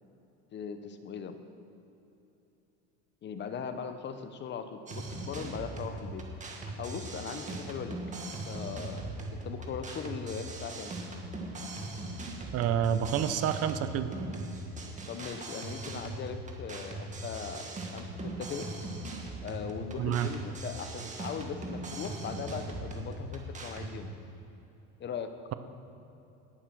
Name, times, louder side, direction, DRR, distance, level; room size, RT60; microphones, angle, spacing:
voice 1, 0.5-1.4 3.2-10.9 15.1-17.7 17.9-18.7 19.4-24.1 25.0-25.4, left 6 dB, 35° left, 9 dB, 0.8 m, -39 dB
sound 1, 4.9-23.9, right 2 dB, 20° right, 1.8 m, -40 dB
voice 2, 12.5-14.1 20.0-20.3, right 9 dB, 45° right, 11 dB, 0.8 m, -28 dB
18.5 x 6.7 x 6.1 m, 3.0 s
supercardioid pair, 125°, 34 cm